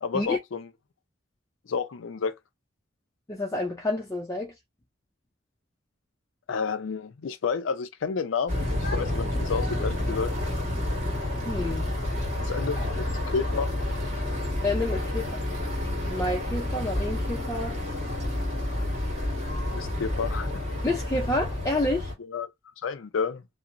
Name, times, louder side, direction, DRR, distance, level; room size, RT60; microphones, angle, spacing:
voice 1, 0.0-0.7 1.7-2.3 6.5-10.3 12.4-13.1 13.3-13.8 19.7-20.5 22.3-22.5 22.8-23.4, left 5 dB, 85° left, 0.5 m, -30 dB
voice 2, 3.3-4.5 11.5-11.9 12.8-12.9 14.6-15.4 16.1-17.8 20.8-22.1, left 2 dB, 15° left, 0.4 m, -29 dB
sound 1, 8.5-22.1, left 1 dB, 40° right, 1.4 m, -29 dB
2.7 x 2.0 x 2.5 m
head